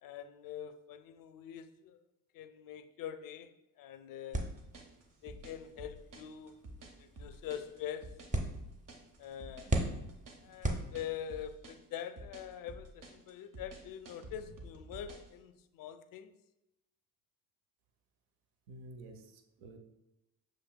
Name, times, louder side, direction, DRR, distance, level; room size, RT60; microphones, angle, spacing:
voice 1, 0.0-2.0 2.3-3.5 3.8-4.5 5.2-6.6 7.0-8.2 9.2-9.7 10.4-16.3, left 9 dB, 50° left, 0.5 m, -44 dB
sound 1, 4.3-11.4, right 1 dB, 15° right, 0.8 m, -39 dB
sound 2, 4.4-15.3, right 1 dB, 45° right, 1.0 m, -50 dB
voice 2, 18.7-19.8, right 1 dB, 65° right, 0.7 m, -51 dB
6.9 x 3.1 x 2.2 m
hypercardioid pair, 55°, 45 cm